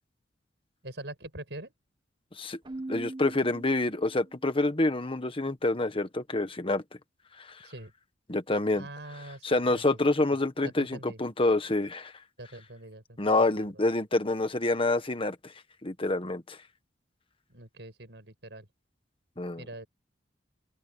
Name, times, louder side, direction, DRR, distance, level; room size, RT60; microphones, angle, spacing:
voice 1, 0.8-1.7 7.6-7.9 8.7-10.0 10.3-11.2 12.4-13.7 17.5-18.7 19.6-19.9, right 1 dB, 75° right, 7.2 m, -44 dB
Keyboard (musical), 2.6-4.5, right 2 dB, 30° right, 1.8 m, -41 dB
voice 2, 2.9-6.8 7.4-7.5 8.3-8.9 9.4-12.1 13.2-15.5 15.8-16.6 19.4-19.6, left 2 dB, 30° left, 1.5 m, -27 dB
head